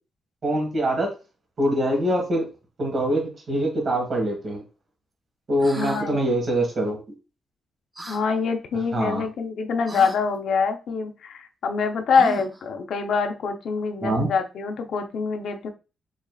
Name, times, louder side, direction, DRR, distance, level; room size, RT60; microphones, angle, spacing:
voice 1, 0.4-1.1 1.6-2.4 2.8-4.6 5.5-7.0 8.9-9.2 14.0-14.3, right 1 dB, 45° right, 1 dB, 1.7 m, -24 dB
sound 1, 5.6-6.0 8.0-8.2 9.9-10.2 12.1-12.6, right 2 dB, 15° right, 0.6 m, -37 dB
voice 2, 5.8-6.2 8.1-15.7, left 5 dB, 70° left, 4 dB, 0.7 m, -25 dB
5.4 x 3.2 x 2.4 m, 0.31 s
cardioid pair, 120°, 0 cm